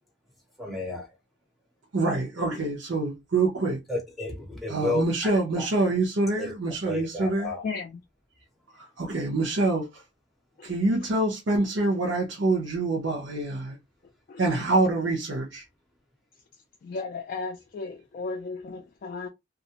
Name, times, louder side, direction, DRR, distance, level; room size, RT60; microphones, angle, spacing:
voice 1, 0.6-1.1 3.9-5.3 6.4-6.5 6.8-7.6, left 2 dB, ahead, 0.5 m, -31 dB
voice 2, 1.9-3.8 4.7-7.5 8.7-10.0 10.6-13.8 14.4-15.7, right 2 dB, 80° right, 0.7 m, -26 dB
voice 3, 7.6-8.0 10.6-10.8 14.3-14.4 16.8-19.3, left 4 dB, 50° left, 0.3 m, -35 dB
2.4 x 2.0 x 2.7 m
head